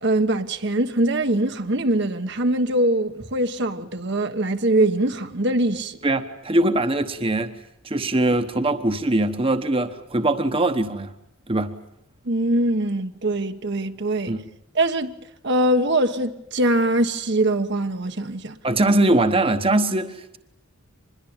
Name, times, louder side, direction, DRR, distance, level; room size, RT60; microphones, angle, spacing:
voice 1, 0.0-6.0 12.2-14.4 14.7-15.2 15.4-18.6, right 1 dB, 55° right, 1.2 m, -22 dB
voice 2, 6.0-7.5 7.8-11.1 11.5-11.7 14.3-14.4 18.6-20.4, right 2 dB, 25° right, 1.1 m, -21 dB
25.5 x 21.5 x 8.8 m
head